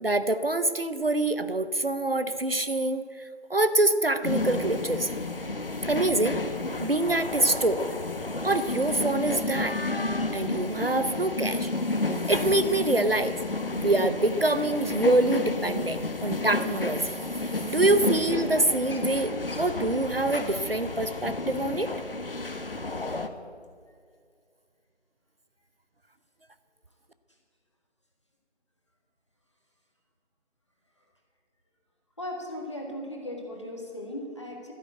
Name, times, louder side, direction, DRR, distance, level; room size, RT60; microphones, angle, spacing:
voice 1, 0.0-5.1 5.9-6.4 6.8-7.8 8.4-9.8 10.3-11.7 12.2-13.4 13.8-21.9, right 2 dB, 55° right, 12 dB, 0.7 m, -25 dB
sound 1, 4.2-23.3, left 2 dB, 55° left, 1.0 m, -31 dB
voice 2, 32.2-34.7, left 1 dB, 25° left, 1 dB, 1.6 m, -37 dB
12.5 x 10.5 x 7.8 m, 2.1 s
figure-of-eight pair, 170°, 34 cm